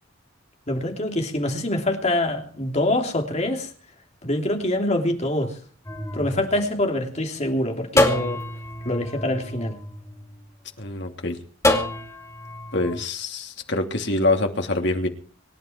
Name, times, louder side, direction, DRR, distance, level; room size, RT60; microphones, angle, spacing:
voice 1, 0.7-3.7 4.2-5.6 6.1-8.4 8.8-9.8, left 1 dB, 35° left, 3.2 m, -25 dB
sound 1, 5.8-7.3 8.0-10.5 11.6-13.0, left 1 dB, 15° left, 2.5 m, -26 dB
voice 2, 10.8-11.4 12.7-15.1, left 2 dB, 55° left, 2.9 m, -25 dB
25.0 x 11.5 x 4.6 m
head